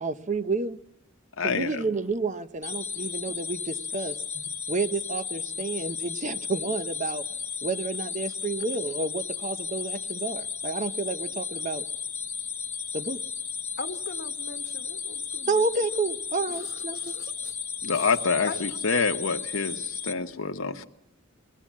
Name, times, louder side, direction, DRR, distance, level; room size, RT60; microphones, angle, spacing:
voice 1, 0.0-0.8 1.4-4.2 4.7-7.2 7.6-11.8 12.9-13.2 15.5-17.2, right 3 dB, 35° right, 12 dB, 0.8 m, -30 dB
voice 2, 1.4-1.7 17.8-20.8, left 5 dB, 75° left, 5 dB, 1.0 m, -27 dB
sound 1, 2.6-20.1, left 6 dB, 10° left, 0.9 m, -34 dB
voice 3, 13.8-15.5 17.1-17.3 17.9-18.1 18.4-18.6, left 3 dB, 50° left, 7 dB, 1.1 m, -39 dB
22.5 x 16.0 x 7.3 m, 0.82 s
head